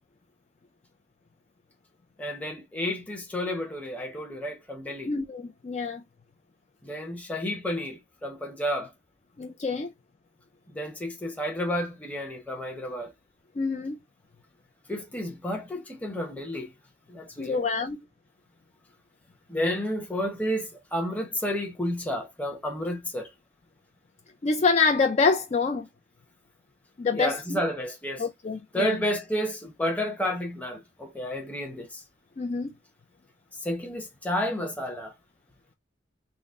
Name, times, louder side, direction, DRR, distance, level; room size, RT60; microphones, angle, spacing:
voice 1, 2.2-5.1 6.8-8.9 10.7-13.1 14.9-16.7 17.1-17.6 19.5-23.3 27.1-28.3 28.7-32.0 33.6-35.1, equal, 10° left, 0.9 m, -31 dB
voice 2, 5.1-6.0 9.4-9.9 13.6-14.0 17.4-18.0 24.4-25.9 27.0-27.6 28.2-29.0 32.4-32.7, left 4 dB, 35° left, 0.4 m, -26 dB
4.0 x 2.0 x 3.5 m
head